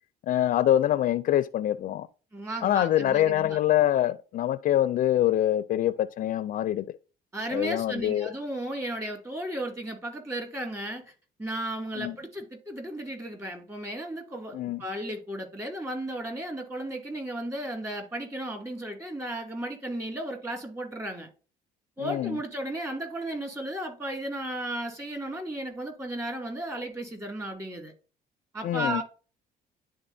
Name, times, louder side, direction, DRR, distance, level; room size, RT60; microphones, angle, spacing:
voice 1, 0.2-2.1 2.6-6.8 7.5-8.3 12.0-12.2 14.5-14.8 22.0-22.4 28.6-29.0, left 12 dB, 55° left, 0.4 m, -25 dB
voice 2, 2.3-3.6 7.3-11.1 11.4-21.3 22.0-27.9 28.5-29.0, right 1 dB, 15° right, 2.2 m, -34 dB
11.0 x 3.7 x 2.6 m
cardioid pair, 110°, 17 cm